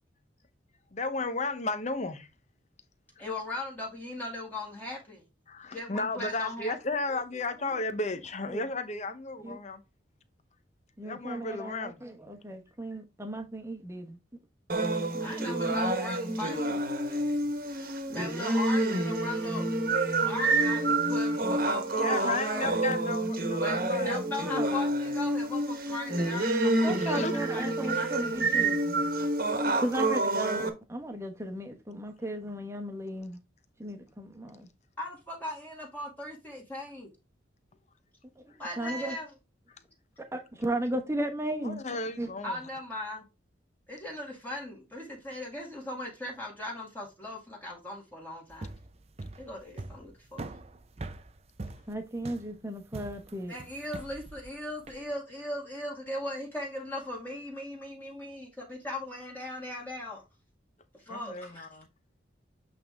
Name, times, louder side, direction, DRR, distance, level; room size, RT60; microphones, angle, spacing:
voice 1, 0.9-2.3 3.2-3.3 5.5-9.8 11.0-12.0 21.9-24.2 24.5-24.8 27.0-27.3 41.6-42.6 61.1-61.9, left 3 dB, 35° left, 0.8 m, -34 dB
voice 2, 3.2-5.2 5.7-6.8 15.2-16.8 18.1-19.6 20.1-22.7 23.6-28.4 35.0-37.1 38.6-39.3 42.4-43.2 43.9-48.7 49.4-50.5 53.5-60.2 60.9-61.7, left 2 dB, 10° left, 2.0 m, -38 dB
voice 3, 11.0-14.2 15.1-15.8 22.2-22.4 24.0-24.2 24.5-24.7 26.8-28.8 29.8-33.4 33.8-34.7 38.4-39.2 40.3-41.8 42.2-42.3 51.9-53.5, right 1 dB, 15° right, 1.1 m, -35 dB
sound 1, 14.7-30.7, right 2 dB, 50° right, 1.3 m, -28 dB
sound 2, 48.5-55.0, right 2 dB, 35° right, 0.5 m, -43 dB
8.5 x 3.5 x 3.6 m
head